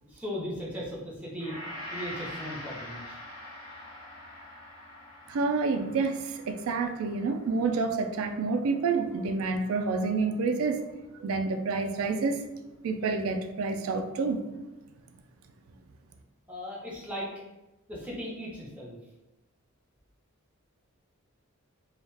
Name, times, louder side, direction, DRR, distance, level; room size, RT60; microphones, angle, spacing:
voice 1, 0.0-1.6 1.9-3.2 16.5-17.3 17.9-19.0, equal, 5° right, -5 dB, 0.7 m, -37 dB
Gong, 1.4-9.8 10.2-10.3, left 1 dB, 70° left, 1.2 m, -45 dB
voice 2, 5.3-10.8 11.1-12.5 12.8-14.4, right 4 dB, 65° right, 5 dB, 0.3 m, -28 dB
2.3 x 2.1 x 3.2 m, 1.0 s
head